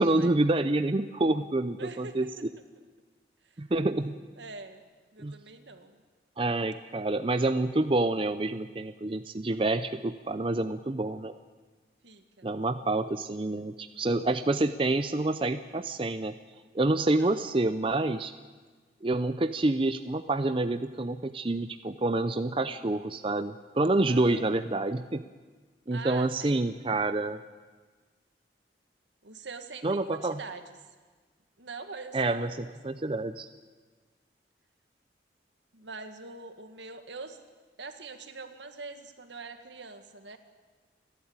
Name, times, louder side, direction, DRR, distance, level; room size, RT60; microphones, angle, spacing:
voice 1, 0.0-2.3 3.6-4.1 5.2-5.3 6.4-11.4 12.4-16.3 16.7-18.3 19.0-25.2 25.9-27.4 29.8-30.4 32.1-33.5, right 2 dB, 30° right, 10 dB, 0.5 m, -27 dB
voice 2, 1.8-2.3 3.4-3.6 4.4-4.8 5.1-6.0 12.0-12.5 13.8-14.1 17.1-17.4 24.1-24.5 25.9-26.6 29.2-30.8 31.6-32.6 35.7-37.4 37.8-40.4, right 4 dB, 80° right, 7 dB, 1.9 m, -44 dB
29.5 x 12.0 x 8.9 m, 1.4 s
head